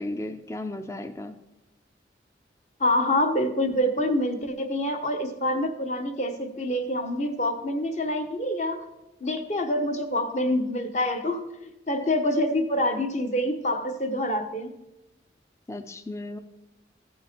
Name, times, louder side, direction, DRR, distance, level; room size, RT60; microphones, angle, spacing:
voice 1, 0.0-1.4 15.7-16.4, left 1 dB, 15° left, 8 dB, 0.4 m, -35 dB
voice 2, 2.8-8.8 9.2-11.5 11.9-14.7, left 1 dB, 40° left, 7 dB, 1.0 m, -26 dB
15.0 x 5.6 x 4.3 m, 0.96 s
head